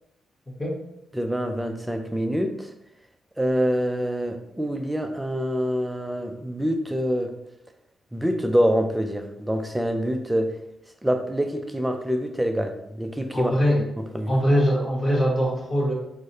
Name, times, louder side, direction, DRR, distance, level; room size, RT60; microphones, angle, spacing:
voice 1, 1.1-2.7 3.4-7.3 8.1-10.6 11.0-13.6 14.0-14.3, equal, 10° right, 6 dB, 0.5 m, -26 dB
voice 2, 13.3-13.8 14.3-15.9, equal, 30° left, -3 dB, 1.3 m, -22 dB
4.6 x 2.1 x 2.7 m, 0.82 s
supercardioid pair, 50°, 0 cm